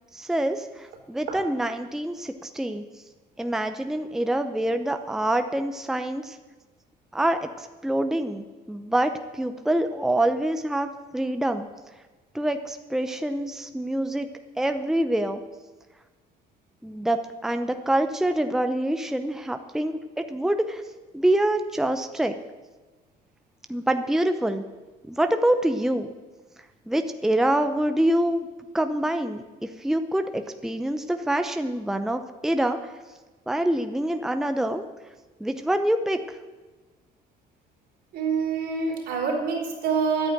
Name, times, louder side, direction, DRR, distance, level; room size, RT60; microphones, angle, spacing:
voice 1, 0.1-2.8 3.4-6.4 7.1-11.7 12.3-14.3 14.6-15.4 16.8-20.8 21.1-22.4 23.7-24.6 25.1-26.1 26.9-28.5 28.7-32.9 33.5-34.8 35.4-36.4, right 1 dB, 5° right, 7 dB, 0.7 m, -26 dB
voice 2, 38.1-40.3, right 5 dB, 70° right, 0 dB, 3.9 m, -26 dB
11.0 x 9.0 x 9.1 m, 1.3 s
cardioid pair, 110°, 17 cm